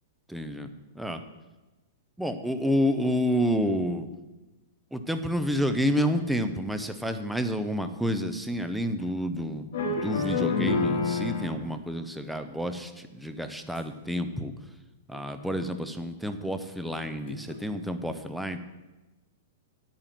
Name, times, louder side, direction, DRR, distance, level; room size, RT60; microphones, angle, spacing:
voice 1, 0.3-1.2 2.2-4.1 4.9-14.5 15.1-18.6, equal, ahead, 8 dB, 0.7 m, -29 dB
sound 1, 9.7-11.6 13.8-13.9 15.1-15.2 15.5-15.6 17.3-17.6, left 4 dB, 65° left, 3.1 m, -28 dB
8.9 x 8.9 x 6.0 m, 1.1 s
hypercardioid pair, 155°, 0 cm